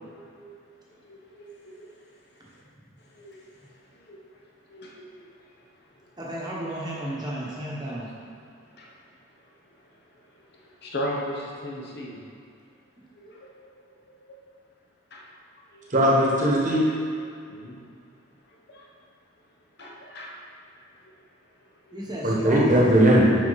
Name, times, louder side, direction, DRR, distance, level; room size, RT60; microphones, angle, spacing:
voice 1, 0.1-0.5 0.9-1.9 2.5-2.6 3.0-3.4 3.9-4.4 4.7-5.3 6.0-6.1 6.7-6.8 7.3-7.4 7.9-8.0 8.7-9.1 9.9-10.0 10.3-12.3 13.1-14.4 15.1-15.2 15.7-15.8 16.9-17.0 17.5-17.8 18.5-18.9 19.8-20.4 21.9-22.0, equal, 50° left, -3 dB, 1.1 m, -39 dB
voice 2, 6.2-8.1 11.7-11.8 21.9-22.8, right 1 dB, 20° right, -5 dB, 1.2 m, -33 dB
voice 3, 15.9-16.8 22.2-23.3, equal, 40° right, -5 dB, 1.3 m, -19 dB
11.0 x 4.3 x 4.1 m, 2.3 s
head